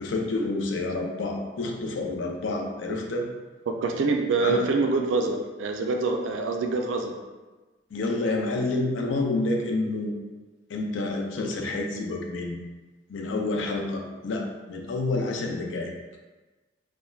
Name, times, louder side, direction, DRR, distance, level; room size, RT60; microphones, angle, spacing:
voice 1, 0.0-3.2 4.4-4.6 7.9-10.1 10.7-12.6 13.1-15.9, left 2 dB, 80° left, 1 dB, 0.4 m, -28 dB
voice 2, 3.7-7.1, right 3 dB, 85° right, 3 dB, 0.3 m, -26 dB
3.1 x 2.1 x 2.3 m, 1.2 s
head